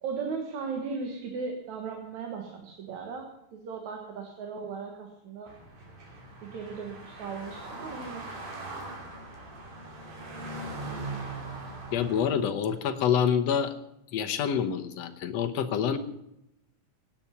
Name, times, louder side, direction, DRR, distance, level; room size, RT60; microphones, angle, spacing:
voice 1, 0.0-5.5 6.4-8.2, right 5 dB, 70° right, 2 dB, 2.9 m, -37 dB
sound 1, 5.5-12.3, right 2 dB, 90° right, 4.5 m, -40 dB
voice 2, 11.9-13.7 14.1-16.0, left 8 dB, 65° left, 7 dB, 2.0 m, -27 dB
17.5 x 10.0 x 5.8 m, 0.84 s
omnidirectional pair, 3.5 m